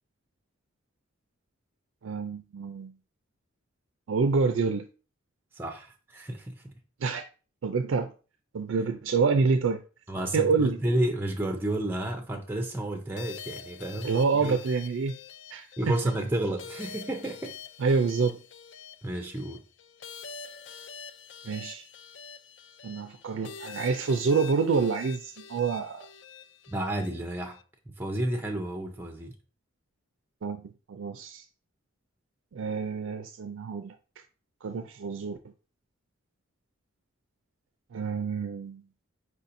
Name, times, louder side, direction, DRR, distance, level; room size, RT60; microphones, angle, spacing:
voice 1, 2.0-2.9 4.1-4.9 7.0-7.2 7.6-8.1 8.5-9.8 10.3-10.8 14.0-15.2 15.5-15.9 17.8-18.4 21.4-21.9 22.8-26.1 30.4-31.5 32.5-33.9 34.6-35.4 37.9-38.8, right 4 dB, 70° right, 0.4 m, -27 dB
voice 2, 5.5-6.7 10.1-14.6 15.8-17.6 19.0-19.6 26.7-27.6 27.9-29.3, right 1 dB, 10° right, 0.4 m, -31 dB
sound 1, 13.2-27.6, left 7 dB, 60° left, 0.4 m, -46 dB
4.9 x 4.1 x 2.6 m
head